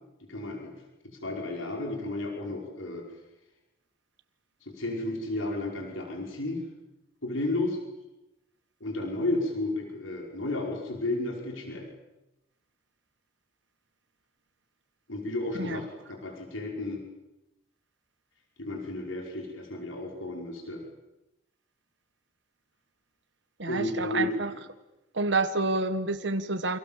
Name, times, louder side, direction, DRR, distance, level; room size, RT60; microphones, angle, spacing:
voice 1, 0.3-3.1 4.6-6.6 7.2-7.8 8.8-11.9 15.1-17.0 18.6-20.8 23.6-24.6, left 2 dB, 85° left, 1 dB, 5.3 m, -33 dB
voice 2, 23.6-24.5 25.1-26.8, right 3 dB, 65° right, 9 dB, 1.3 m, -28 dB
29.0 x 26.5 x 7.4 m, 0.97 s
head